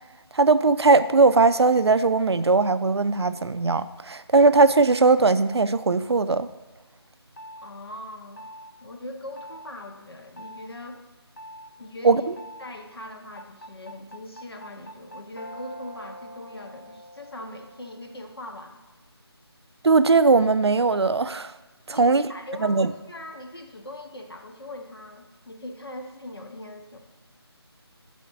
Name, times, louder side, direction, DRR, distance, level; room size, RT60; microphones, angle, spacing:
voice 1, 0.3-6.5 12.0-12.2 19.8-21.5 21.9-22.3 22.6-22.9, right 3 dB, 75° right, 13 dB, 0.4 m, -19 dB
sound 1, 7.4-7.7 8.4-8.7 9.4-9.7 10.4-10.7 11.4-11.7 12.4-12.7 13.4-18.4, equal, 45° left, 0.5 m, -44 dB
voice 2, 7.6-8.5 8.8-11.0 11.8-12.3 12.6-18.8 21.9-27.0, left 1 dB, 65° left, 3 dB, 0.8 m, -40 dB
5.7 x 4.2 x 5.8 m, 1.1 s
figure-of-eight pair, 160°, 14 cm